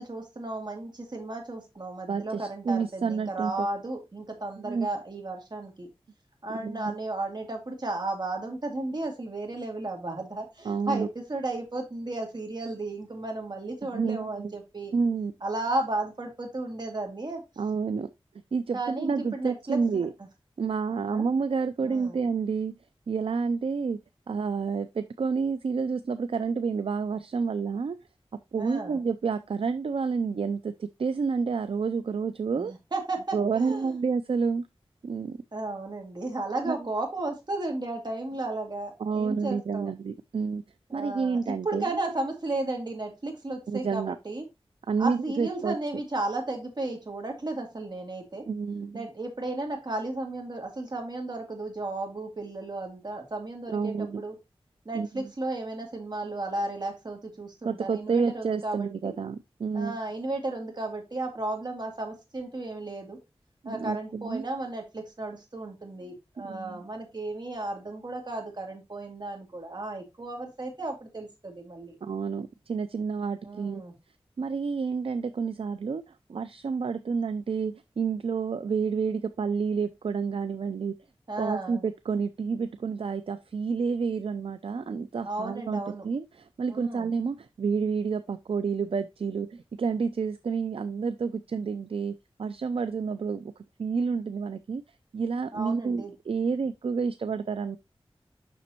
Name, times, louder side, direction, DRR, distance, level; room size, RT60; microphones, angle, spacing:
voice 1, 0.0-5.9 6.4-14.9 15.4-17.4 18.7-20.1 21.0-21.3 21.8-22.2 28.6-29.0 32.6-33.9 35.5-39.9 40.9-44.4 45.0-48.5 48.9-54.4 54.8-59.1 59.7-63.2 63.7-71.9 73.4-73.9 81.3-81.8 85.2-86.1 86.7-87.1 95.5-96.1, right 2 dB, 45° right, 2.3 m, -34 dB
voice 2, 2.1-3.7 4.6-4.9 6.5-7.0 10.6-11.1 13.9-14.5 14.9-15.3 17.6-18.1 18.5-20.1 20.6-22.7 23.1-24.0 24.3-28.0 28.5-32.7 33.3-34.6 35.0-35.4 36.7-36.8 39.0-40.6 40.9-41.9 43.7-44.2 44.9-45.8 48.5-49.1 53.7-54.2 54.9-55.3 57.6-60.0 63.6-64.4 66.5-66.8 72.0-73.8 74.4-80.9 81.4-93.5 93.8-94.8 95.1-97.8, right 5 dB, 65° right, 0.4 m, -29 dB
7.0 x 6.0 x 2.9 m
wide cardioid pair, 85°, 10 cm